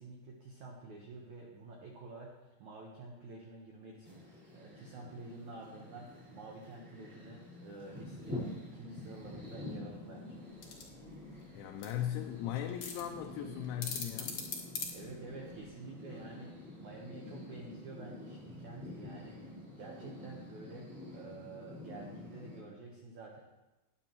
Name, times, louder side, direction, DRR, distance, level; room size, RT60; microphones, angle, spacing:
voice 1, 0.0-2.3 2.6-10.5 14.9-23.4, right 3 dB, 85° right, -1 dB, 1.6 m, -49 dB
sound 1, 4.0-22.6, left 2 dB, 15° right, 3.7 m, -48 dB
sound 2, 10.5-15.6, left 5 dB, 60° left, 2.0 m, -43 dB
voice 2, 11.5-14.4, left 11 dB, 85° left, 3 dB, 3.0 m, -38 dB
19.5 x 7.7 x 3.0 m, 1.0 s
omnidirectional pair, 5.3 m